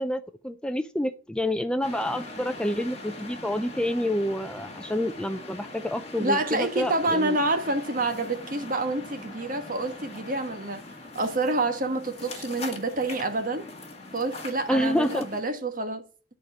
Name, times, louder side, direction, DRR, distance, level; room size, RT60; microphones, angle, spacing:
voice 1, 0.0-7.4 14.7-15.3, left 1 dB, 5° left, 0.4 m, -28 dB
sound 1, 1.8-15.4, left 2 dB, 35° left, 1.9 m, -42 dB
voice 2, 6.2-10.8 11.1-13.7 14.1-16.0, right 2 dB, 45° right, 1.4 m, -28 dB
10.5 x 5.0 x 7.1 m
head